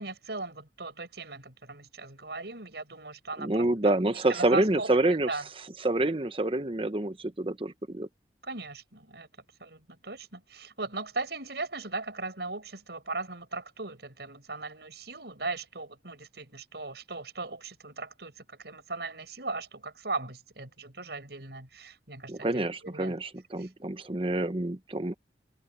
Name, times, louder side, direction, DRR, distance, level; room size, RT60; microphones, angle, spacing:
voice 1, 0.0-4.9 5.3-5.4 8.5-9.3 9.6-23.1 23.6-23.7, right 3 dB, 70° right, 5.2 m, -38 dB
voice 2, 3.4-5.3 5.8-8.1 22.3-25.1, right 2 dB, 30° right, 0.9 m, -27 dB
head